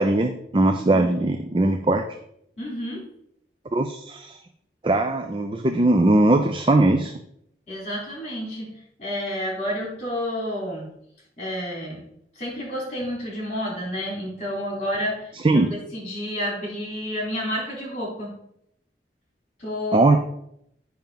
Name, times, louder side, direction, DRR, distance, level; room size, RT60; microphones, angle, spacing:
voice 1, 0.0-2.0 3.7-4.4 4.8-7.1 15.4-15.7 19.9-20.2, right 2 dB, 30° right, 6 dB, 0.4 m, -20 dB
voice 2, 2.6-3.0 7.7-8.7 9.0-10.9 11.4-12.0 12.4-18.3 19.6-20.2, equal, 40° left, -4 dB, 3.5 m, -30 dB
8.9 x 5.7 x 3.9 m, 0.73 s
head